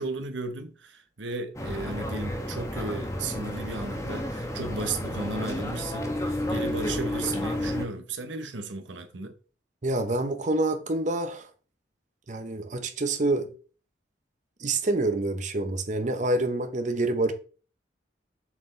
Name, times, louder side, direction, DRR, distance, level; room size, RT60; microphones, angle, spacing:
voice 1, 0.0-9.3, right 3 dB, 80° right, 0.9 m, -35 dB
sound 1, 1.5-7.8, left 1 dB, 15° left, 0.8 m, -31 dB
voice 2, 9.8-11.5 12.3-13.5 14.6-17.3, right 2 dB, 40° right, 0.7 m, -27 dB
7.1 x 4.3 x 3.2 m
head